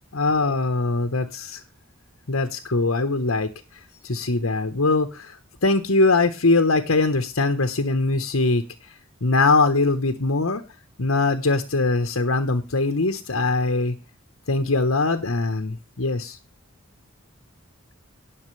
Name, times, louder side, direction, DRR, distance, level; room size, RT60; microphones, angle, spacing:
voice 1, 0.1-1.6 2.3-3.5 4.0-8.9 9.2-10.6 11.0-13.9 14.5-16.4, left 3 dB, 90° left, 6 dB, 1.2 m, -22 dB
18.5 x 6.6 x 3.3 m, 0.30 s
head